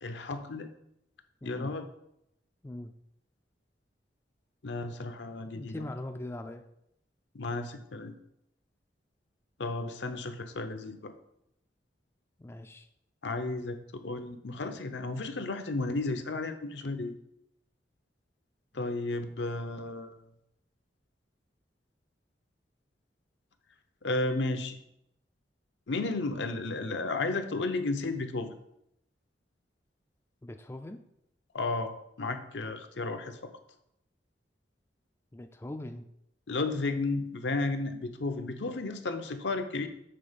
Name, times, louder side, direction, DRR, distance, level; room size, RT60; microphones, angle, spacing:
voice 1, 0.0-0.7 1.4-1.9 4.6-5.9 7.3-8.1 9.6-11.1 13.2-17.1 18.7-20.2 24.0-24.8 25.9-28.6 31.5-31.9 32.2-33.4 36.5-39.9, left 3 dB, 75° left, 8 dB, 0.7 m, -33 dB
voice 2, 1.4-1.7 2.6-2.9 5.5-6.6 12.4-12.9 30.4-31.0 35.3-36.0, left 1 dB, 15° left, 7 dB, 0.3 m, -41 dB
7.6 x 3.9 x 5.1 m, 0.78 s
head